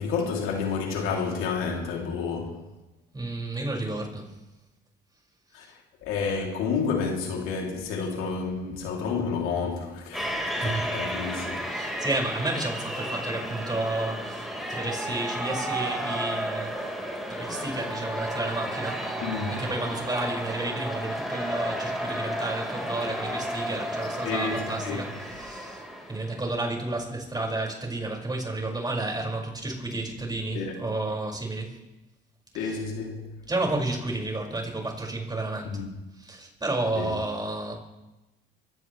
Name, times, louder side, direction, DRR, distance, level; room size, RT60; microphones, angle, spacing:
voice 1, 0.0-2.6 5.5-5.6 6.0-11.6 19.2-19.6 24.2-25.0 30.5-30.9 32.5-33.3 35.7-36.0 37.0-37.1, left 5 dB, 85° left, 3.0 m, -30 dB
voice 2, 3.1-4.3 10.5-10.9 11.7-16.8 17.3-19.1 19.6-25.8 26.1-31.7 32.5-32.8 33.5-35.8 36.2-37.7, right 2 dB, 20° right, 5.5 m, -31 dB
sound 1, 10.1-26.4, equal, ahead, 4.4 m, -32 dB
23.5 x 16.5 x 3.3 m
cardioid pair, 90°, 21 cm